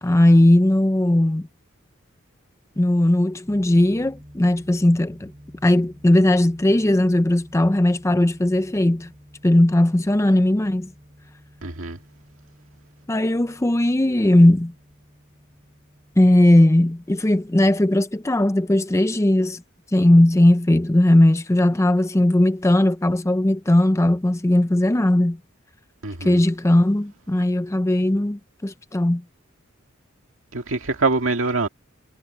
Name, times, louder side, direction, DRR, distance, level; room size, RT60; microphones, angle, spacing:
voice 1, 0.0-1.5 2.8-5.3 5.6-9.1 9.4-10.9 13.1-14.7 16.2-19.6 19.9-25.4 26.2-29.2, left 1 dB, 15° left, 0.5 m, -18 dB
sound 1, 3.4-17.9, equal, 20° right, 6.0 m, -49 dB
voice 2, 11.6-12.0 26.0-26.4 30.5-31.7, right 3 dB, 70° right, 2.1 m, -24 dB
head